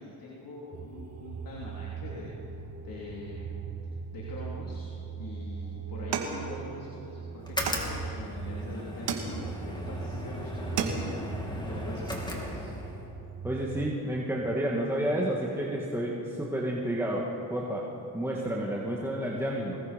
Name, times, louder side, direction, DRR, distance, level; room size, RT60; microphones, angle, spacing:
voice 1, 0.0-2.4 2.8-3.5 4.1-4.9 5.2-11.0 11.6-12.7, left 2 dB, 50° left, -4 dB, 3.8 m, -43 dB
sound 1, 0.7-14.1, right 6 dB, 35° right, 1.3 m, -40 dB
sound 2, 6.1-7.1 7.7-8.4 9.1-9.8 10.2-10.3 10.6-11.3, right 6 dB, 85° right, 2.3 m, -34 dB
sound 3, 7.4-13.1, left 1 dB, 10° left, 3.4 m, -37 dB
voice 2, 13.4-19.8, right 1 dB, 5° right, -3 dB, 2.3 m, -30 dB
24.5 x 20.0 x 5.4 m, 2.9 s
cardioid pair, 90°, 42 cm